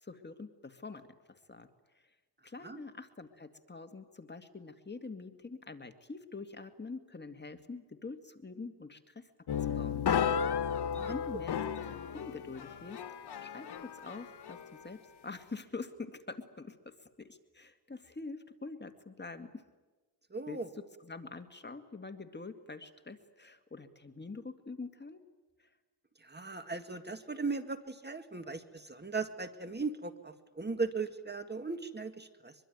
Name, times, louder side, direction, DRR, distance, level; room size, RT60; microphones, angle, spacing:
voice 1, 0.0-1.7 2.4-9.3 9.6-10.1 11.0-11.9 12.1-13.0 13.4-19.6 20.5-20.6 21.0-25.2 25.6-25.7, left 3 dB, 25° left, 7 dB, 2.1 m, -45 dB
sound 1, 9.5-14.8, left 8 dB, 85° left, 1.3 m, -34 dB
voice 2, 20.3-20.7 26.2-32.5, right 4 dB, 25° right, 8 dB, 2.0 m, -38 dB
24.0 x 23.5 x 9.4 m, 1.2 s
wide cardioid pair, 90°, 38 cm